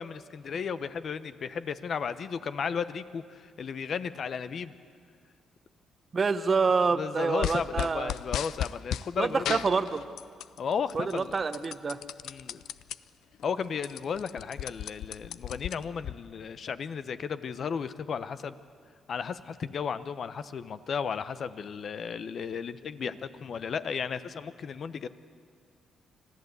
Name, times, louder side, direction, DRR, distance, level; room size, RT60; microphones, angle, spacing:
voice 1, 0.0-4.7 6.9-9.7 10.6-11.4 12.2-12.6 13.4-18.6 19.1-25.1, left 6 dB, 55° left, 13 dB, 0.9 m, -34 dB
voice 2, 6.1-8.1 9.2-10.0 10.9-12.0, right 4 dB, 40° right, 10 dB, 0.9 m, -27 dB
sound 1, 7.4-9.1 9.4-10.6 10.9-13.0 13.4-13.5 13.7-16.1, left 11 dB, 80° left, 0.4 m, -35 dB
25.5 x 15.0 x 8.2 m, 2.2 s
cardioid pair, 80°, 0 cm